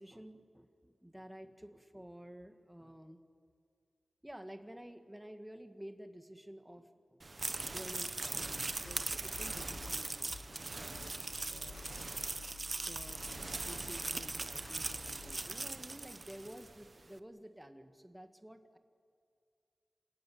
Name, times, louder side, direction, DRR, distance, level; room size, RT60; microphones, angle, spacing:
voice 1, 0.0-3.2 4.2-7.2 7.7-10.3 10.7-11.1 11.5-11.9 12.9-13.3 13.5-18.8, equal, 10° right, 7 dB, 2.0 m, -51 dB
sound 1, 7.2-16.7, right 3 dB, 40° right, 1.0 m, -40 dB
sound 2, 8.4-15.5, left 4 dB, 80° left, 1.3 m, -53 dB
28.5 x 17.0 x 9.5 m, 2.3 s
wide cardioid pair, 65°, 0 cm